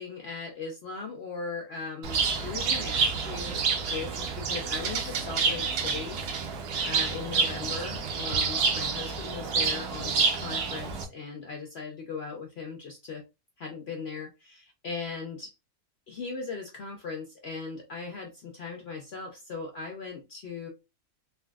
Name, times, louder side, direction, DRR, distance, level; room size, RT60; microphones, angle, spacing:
voice 1, 0.0-3.6 3.9-6.2 6.8-13.2 13.6-15.5 16.1-20.7, left 4 dB, 60° left, 0.7 m, -38 dB
Bird, 2.0-11.0, right 5 dB, 90° right, 1.2 m, -28 dB
3.5 x 2.6 x 2.3 m
omnidirectional pair, 1.6 m